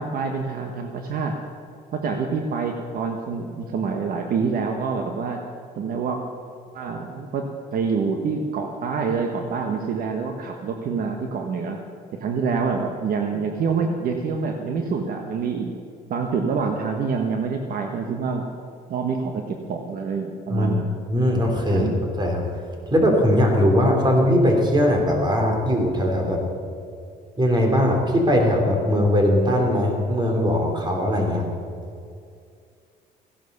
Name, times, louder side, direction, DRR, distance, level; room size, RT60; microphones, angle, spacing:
voice 1, 0.0-1.4 1.9-5.4 5.8-6.2 6.7-11.8 12.1-15.7 16.1-18.4 18.9-20.9 21.7-22.0, right 5 dB, 60° right, 3 dB, 1.3 m, -26 dB
voice 2, 21.1-22.4 22.9-26.4 27.4-31.4, equal, 25° right, 2 dB, 3.5 m, -20 dB
16.0 x 11.0 x 6.8 m, 2.4 s
cardioid pair, 110°, 17 cm